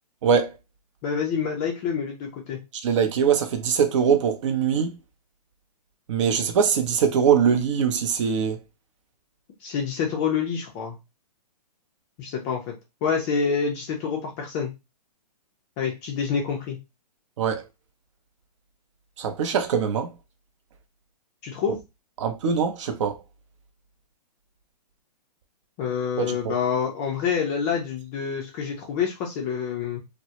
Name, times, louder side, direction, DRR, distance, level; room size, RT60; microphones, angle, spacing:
voice 1, 0.2-0.5 2.8-4.9 6.1-8.6 17.4-17.6 19.2-20.1 22.2-23.2 26.2-26.5, right 7 dB, 45° right, 0.5 m, -22 dB
voice 2, 1.0-2.6 9.6-11.0 12.2-12.7 13.0-14.7 15.8-16.8 21.4-21.8 25.8-30.0, left 6 dB, 20° left, 0.4 m, -27 dB
2.2 x 2.0 x 2.8 m
hypercardioid pair, 140°, 21 cm